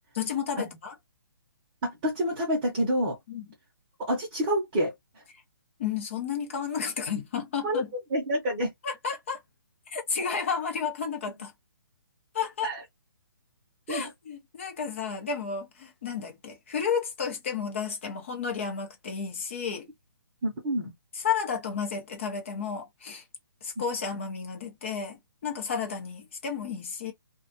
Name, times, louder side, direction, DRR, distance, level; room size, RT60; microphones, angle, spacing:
voice 1, 0.1-0.9 3.3-3.5 5.8-7.9 8.8-9.4 9.9-11.5 12.3-12.7 13.9-19.9 21.1-23.2 23.6-27.1, left 6 dB, 30° left, 0.8 m, -32 dB
voice 2, 1.8-3.2 4.1-4.9 7.6-7.8 8.1-8.7 12.6-12.8 13.9-14.1 20.4-20.9, equal, 15° right, 0.8 m, -27 dB
2.5 x 2.3 x 2.6 m
hypercardioid pair, 170°, 12 cm